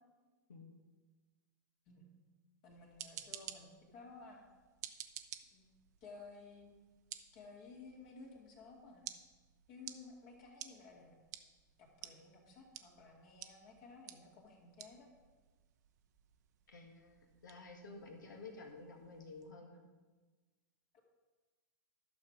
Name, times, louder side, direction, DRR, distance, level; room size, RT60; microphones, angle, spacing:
voice 1, 2.6-4.5 5.5-5.6 6.0-6.7 7.3-9.1 9.7-11.2 11.8-15.1 20.9-21.0, left 3 dB, 45° left, -1 dB, 2.5 m, -55 dB
sound 1, 2.7-19.5, right 11 dB, 55° right, 0.7 m, -54 dB
voice 2, 16.7-19.8, left 3 dB, 75° left, 3 dB, 2.0 m, -52 dB
12.0 x 6.5 x 5.2 m, 1.3 s
figure-of-eight pair, 100°, 10 cm